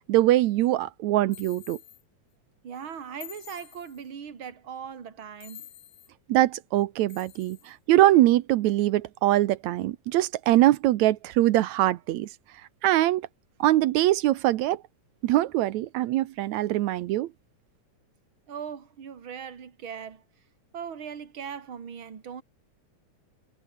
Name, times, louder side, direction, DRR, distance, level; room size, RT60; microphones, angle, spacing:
voice 1, 0.0-1.8 6.3-12.3 12.8-13.3 13.6-14.8 15.2-17.3, right 15 dB, 75° right, 2.0 m, -23 dB
sound 1, 1.3-2.0 3.2-4.1 5.4-6.1 7.1-7.7, left 11 dB, 90° left, 3.3 m, -47 dB
voice 2, 2.6-5.7 18.5-20.2 20.7-22.4, right 7 dB, 45° right, 3.0 m, -39 dB
omnidirectional pair, 3.5 m